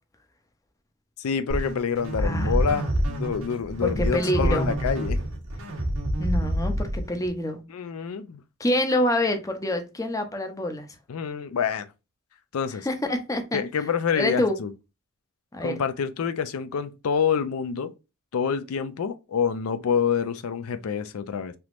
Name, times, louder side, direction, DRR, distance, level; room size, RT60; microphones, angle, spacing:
voice 1, 1.2-5.2 7.7-8.4 11.1-11.9 12.5-12.9 13.5-14.7 15.6-17.9 18.3-21.5, left 6 dB, 90° left, 0.4 m, -27 dB
sound 1, 1.5-7.3, equal, 90° right, 1.1 m, -27 dB
voice 2, 2.2-2.6 3.8-4.7 6.2-7.6 8.6-10.9 12.8-13.6 14.2-14.6 15.5-15.8, left 1 dB, 15° left, 0.5 m, -26 dB
3.4 x 2.9 x 2.4 m
head